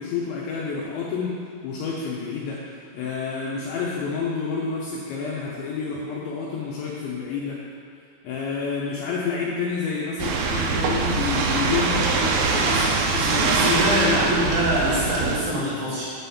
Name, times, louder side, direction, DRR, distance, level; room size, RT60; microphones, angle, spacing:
voice 1, 0.0-1.3 1.6-2.6 2.9-7.6 8.2-14.5, left 5 dB, 75° left, -5 dB, 2.8 m, -29 dB
sound 1, 10.2-15.4, right 4 dB, 85° right, 3.2 m, -23 dB
voice 2, 12.6-16.0, right 1 dB, 60° right, -9 dB, 2.9 m, -25 dB
8.9 x 4.0 x 6.9 m, 2.4 s
omnidirectional pair, 5.8 m